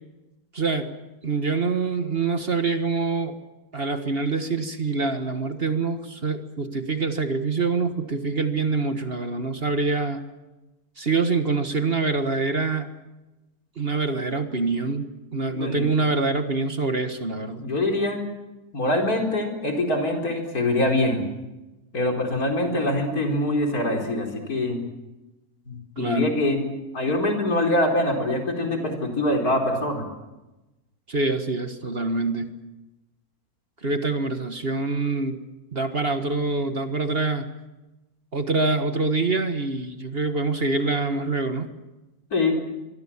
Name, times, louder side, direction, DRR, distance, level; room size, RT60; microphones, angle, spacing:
voice 1, 0.5-0.9 1.2-3.4 3.7-10.2 11.0-12.9 13.8-17.6 26.0-26.3 31.1-32.5 33.8-35.4 35.7-37.5 38.3-41.7, right 3 dB, 40° right, 8 dB, 1.7 m, -25 dB
voice 2, 15.5-16.0 17.6-18.2 18.7-21.2 21.9-24.8 25.7-30.1 42.3-42.5, left 1 dB, 70° left, 2 dB, 4.7 m, -24 dB
25.0 x 23.5 x 7.3 m, 1.0 s
omnidirectional pair, 1.6 m